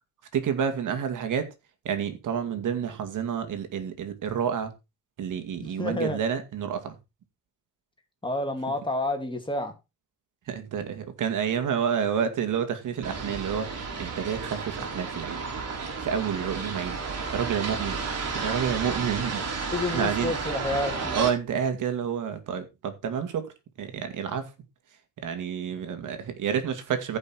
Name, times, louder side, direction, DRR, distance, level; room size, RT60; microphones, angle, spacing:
voice 1, 0.3-1.5 1.8-4.7 5.2-7.0 10.5-15.5 16.0-17.0 17.3-18.0 18.3-20.3 21.1-24.5 25.2-27.2, right 7 dB, 70° right, 2.4 m, -29 dB
voice 2, 5.6-6.2 8.2-9.7 19.7-21.2, left 2 dB, 15° left, 2.7 m, -29 dB
sound 1, 13.0-21.3, right 4 dB, 50° right, 4.2 m, -32 dB
15.0 x 5.6 x 4.5 m
cardioid pair, 115°, 32 cm